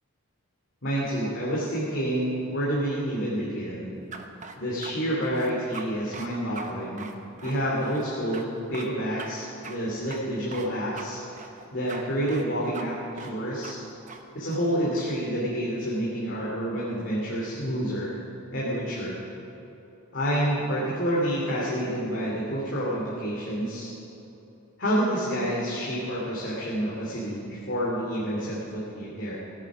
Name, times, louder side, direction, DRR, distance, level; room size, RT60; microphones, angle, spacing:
voice 1, 0.8-3.9 4.6-7.1 7.4-11.4 11.7-13.8 14.3-18.1 18.5-19.2 20.1-23.9 24.8-29.3, equal, 55° left, -6 dB, 2.5 m, -28 dB
sound 1, 4.1-4.9 5.2-5.9 6.1-6.3 6.5-6.7 7.0-8.1 8.3-8.4 8.7-8.9 9.2-9.3 9.6-9.8 10.1-10.7 11.0-11.1 11.4-12.0 12.3-12.5 12.7-12.8 13.2-13.3 13.6-13.7 14.1-14.2 14.5-15.2, right 4 dB, 35° right, 0.9 m, -41 dB
17.0 x 9.8 x 6.1 m, 3.0 s
head